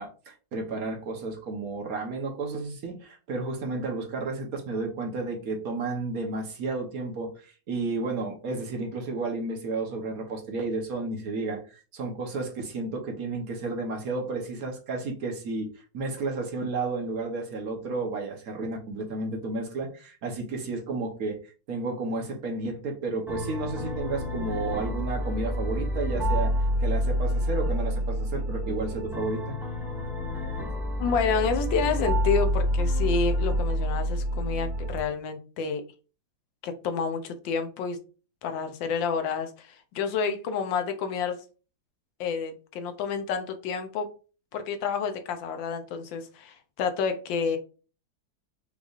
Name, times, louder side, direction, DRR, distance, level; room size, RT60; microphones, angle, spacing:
voice 1, 0.0-11.6 11.9-15.7 15.9-21.4 21.7-29.5, right 3 dB, 55° right, 2 dB, 1.2 m, -32 dB
sound 1, 23.3-35.0, equal, ahead, 0.8 m, -28 dB
voice 2, 31.0-35.8 36.6-38.0 38.4-41.4 42.2-44.1 44.5-47.6, left 5 dB, 80° left, 7 dB, 1.4 m, -29 dB
5.3 x 3.1 x 2.4 m, 0.35 s
omnidirectional pair, 2.1 m